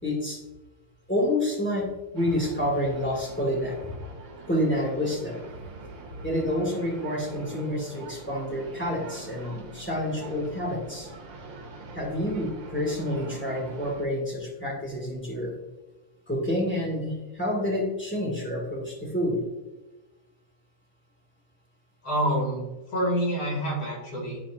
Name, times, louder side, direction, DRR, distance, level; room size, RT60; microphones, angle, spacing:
voice 1, 0.0-0.4 1.1-1.9 2.1-3.9 4.5-5.4 6.2-11.1 11.9-15.5 16.3-19.4, left 1 dB, 5° left, -3 dB, 1.4 m, -28 dB
sound 1, 2.2-14.1, right 3 dB, 65° right, 1.7 m, -43 dB
voice 2, 22.0-24.4, equal, 75° left, -4 dB, 3.2 m, -27 dB
11.5 x 4.2 x 2.4 m, 1.1 s
omnidirectional pair, 2.4 m